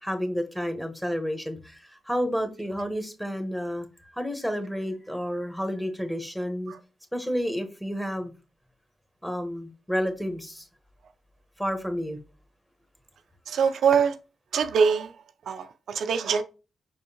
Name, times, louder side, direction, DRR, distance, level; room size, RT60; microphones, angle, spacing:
voice 1, 0.0-3.9 4.1-6.7 7.1-8.3 9.2-10.6 11.6-12.2, equal, 5° left, 1.2 m, -30 dB
voice 2, 13.5-14.1 14.5-15.1 15.5-16.4, right 6 dB, 80° right, 0.4 m, -23 dB
5.2 x 3.4 x 2.9 m
supercardioid pair, 50°, 0 cm